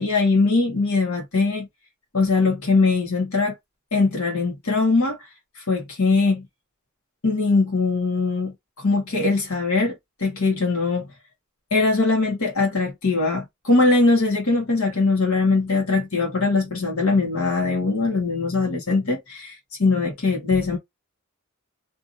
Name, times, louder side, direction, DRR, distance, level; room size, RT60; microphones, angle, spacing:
voice 1, 0.0-1.7 2.1-3.5 3.9-5.2 5.6-6.4 7.2-8.5 8.8-9.9 10.2-11.0 11.7-20.8, left 3 dB, 75° left, 1.1 m, -21 dB
2.7 x 2.5 x 2.4 m
head